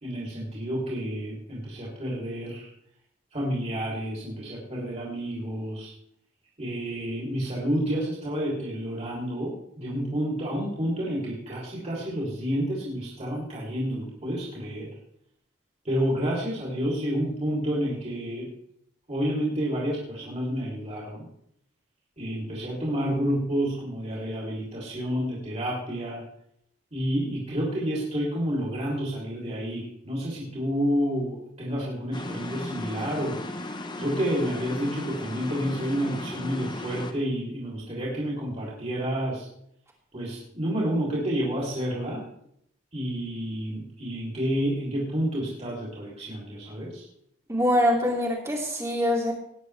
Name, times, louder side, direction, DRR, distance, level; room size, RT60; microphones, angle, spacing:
voice 1, 0.0-2.7 3.3-5.9 6.6-14.9 15.8-18.5 19.1-21.3 22.2-26.2 26.9-33.6 34.0-39.5 40.1-42.2 42.9-47.1, equal, 35° right, -5 dB, 3.3 m, -29 dB
sound 1, 32.1-37.1, left 2 dB, 20° left, 0.9 m, -36 dB
voice 2, 47.5-49.3, left 1 dB, 15° right, -1 dB, 2.6 m, -24 dB
18.5 x 9.9 x 3.4 m, 0.71 s
head